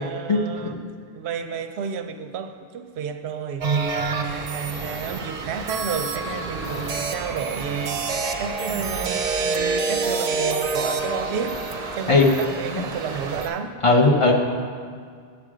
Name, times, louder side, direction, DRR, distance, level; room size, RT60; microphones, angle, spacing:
voice 1, 0.0-11.6 11.9-13.8, right 7 dB, 90° right, 9 dB, 0.9 m, -31 dB
sound 1, 3.6-13.5, right 3 dB, 45° right, 0.6 m, -28 dB
voice 2, 13.8-14.3, left 3 dB, 35° left, 0 dB, 0.7 m, -16 dB
7.8 x 7.2 x 4.9 m, 2.1 s
omnidirectional pair, 1.1 m